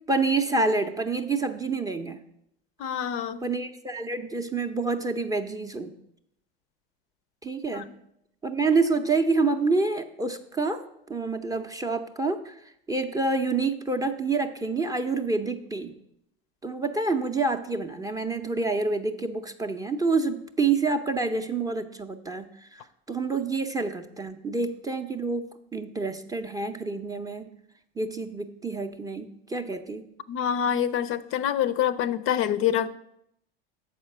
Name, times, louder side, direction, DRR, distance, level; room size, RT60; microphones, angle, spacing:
voice 1, 0.1-2.2 3.4-5.9 7.4-7.9 8.4-10.8 11.1-12.5 12.9-15.9 16.6-22.8 23.1-27.5 28.0-30.1, right 3 dB, 10° right, 6 dB, 0.5 m, -27 dB
voice 2, 2.8-3.4 7.7-7.8 30.3-32.9, left 9 dB, 45° left, 15 dB, 0.5 m, -26 dB
7.0 x 5.0 x 6.5 m, 0.76 s
hypercardioid pair, 95°, 30 cm